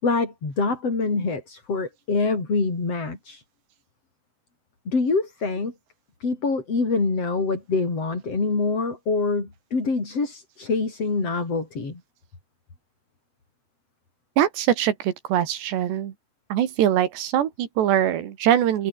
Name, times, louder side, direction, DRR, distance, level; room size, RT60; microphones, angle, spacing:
voice 1, 0.0-3.4 4.9-5.7 6.2-12.0, left 3 dB, 30° left, 6.3 m, -25 dB
voice 2, 14.4-16.1 16.5-18.9, right 11 dB, 65° right, 3.9 m, -22 dB
omnidirectional pair, 5.7 m